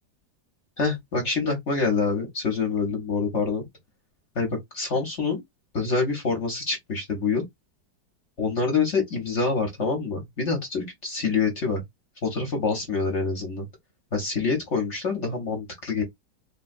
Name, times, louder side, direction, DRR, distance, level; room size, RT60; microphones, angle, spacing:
voice 1, 0.8-3.7 4.4-5.4 5.7-7.4 8.4-11.8 12.2-13.7 14.1-16.0, left 4 dB, 50° left, 1.0 m, -26 dB
3.5 x 2.2 x 2.5 m
omnidirectional pair, 1.9 m